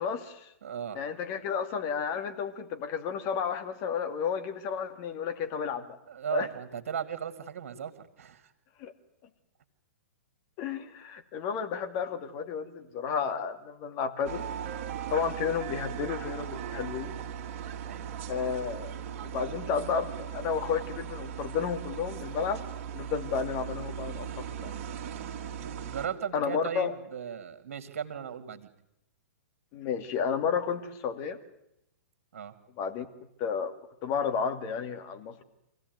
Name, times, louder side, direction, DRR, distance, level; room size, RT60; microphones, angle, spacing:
voice 1, 0.0-0.5 0.9-6.0 6.3-6.5 8.8-8.9 10.6-14.5 15.1-17.1 18.3-18.9 19.2-22.6 22.9-24.7 26.3-26.9 29.7-31.4 32.8-33.1 33.4-33.8 34.0-35.4, left 6 dB, 40° left, 7 dB, 2.2 m, -32 dB
voice 2, 0.6-1.0 6.1-8.5 17.8-18.1 25.8-28.7 32.3-32.5, right 8 dB, 60° right, 9 dB, 2.4 m, -37 dB
sound 1, 14.2-26.1, right 8 dB, 45° right, 2.5 m, -38 dB
25.0 x 16.0 x 9.4 m, 0.84 s
figure-of-eight pair, 115°, 8 cm